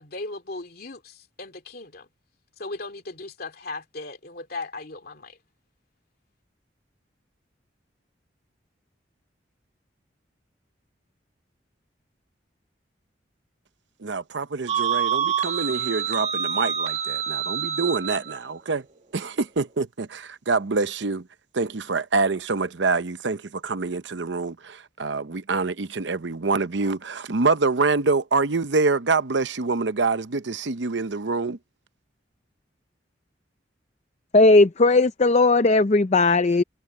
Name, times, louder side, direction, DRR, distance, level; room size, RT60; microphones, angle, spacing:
voice 1, 0.0-2.1 2.6-5.4, left 2 dB, 55° left, 2.7 m, -37 dB
voice 2, 14.0-18.8 19.1-21.3 21.5-31.6, right 3 dB, 70° right, 0.8 m, -26 dB
sound 1, 14.7-18.4, right 7 dB, 35° right, 1.5 m, -26 dB
voice 3, 34.3-36.6, left 2 dB, 35° left, 0.5 m, -17 dB
head